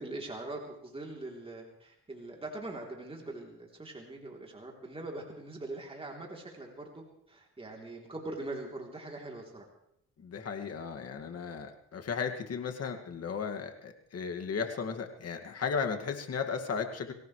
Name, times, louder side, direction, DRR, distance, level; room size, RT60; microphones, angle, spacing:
voice 1, 0.0-9.7, right 2 dB, 20° right, -1 dB, 3.5 m, -42 dB
voice 2, 10.2-17.1, left 6 dB, 55° left, 5 dB, 2.3 m, -35 dB
24.0 x 17.5 x 3.3 m, 0.75 s
cardioid pair, 90°, 30 cm